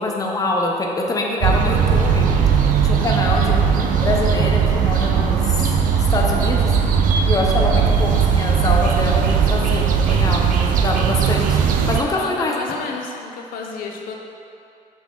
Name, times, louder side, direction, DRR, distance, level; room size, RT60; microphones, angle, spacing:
voice 1, 0.0-2.3 2.8-5.8 6.1-6.7 7.3-11.6 11.9-12.5, left 2 dB, 25° left, -1 dB, 0.8 m, -24 dB
sound 1, 1.4-12.0, right 7 dB, 70° right, 0.5 m, -18 dB
voice 2, 3.2-3.8 7.6-7.9 12.2-14.1, left 4 dB, 90° left, 1 dB, 0.6 m, -32 dB
6.0 x 3.7 x 4.9 m, 2.6 s
cardioid pair, 105°, 14 cm